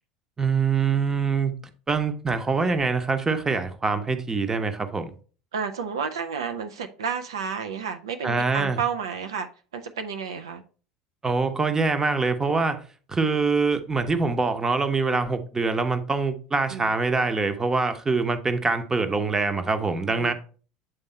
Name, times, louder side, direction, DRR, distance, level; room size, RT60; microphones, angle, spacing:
voice 1, 0.4-1.6 1.9-5.1 8.2-8.8 11.2-12.8 13.1-20.3, right 4 dB, 20° right, 0.9 m, -24 dB
voice 2, 5.5-10.6 16.7-17.0 20.1-20.3, right 6 dB, 80° right, 0.6 m, -31 dB
7.9 x 3.5 x 4.3 m
hypercardioid pair, 75°, 2 cm